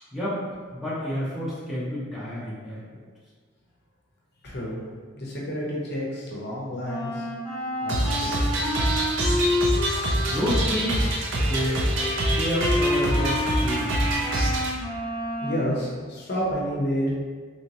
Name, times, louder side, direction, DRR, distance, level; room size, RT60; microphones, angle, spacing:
voice 1, 0.7-2.8 10.3-11.8 12.3-13.9, equal, ahead, -10 dB, 0.8 m, -29 dB
voice 2, 4.4-4.8 5.1-7.3 7.8-8.7 15.4-17.1, equal, 55° left, -5 dB, 0.7 m, -30 dB
Wind instrument woodwind instrument, 6.8-15.7, left 1 dB, 15° left, 1.4 m, -29 dB
sound 1, 7.9-14.7, right 1 dB, 70° right, 0.6 m, -25 dB
3.2 x 2.9 x 2.7 m, 1.5 s
head